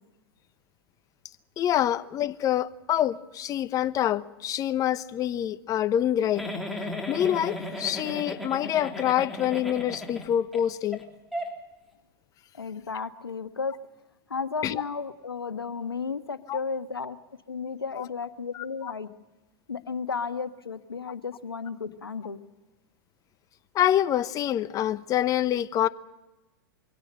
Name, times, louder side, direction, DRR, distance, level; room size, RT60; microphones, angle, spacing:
voice 1, 1.6-6.4 7.1-11.0 14.6-14.8 16.5-16.6 18.0-18.1 18.5-18.9 23.7-25.9, left 11 dB, 30° left, 0.9 m, -26 dB
Giggle, 6.4-10.6 10.9-11.0 11.3-11.5, left 1 dB, ahead, 3.4 m, -35 dB
voice 2, 12.5-13.8 14.3-17.2 17.5-19.1 19.7-22.4, left 5 dB, 90° left, 1.3 m, -33 dB
23.5 x 16.5 x 7.7 m
hypercardioid pair, 105°, 12 cm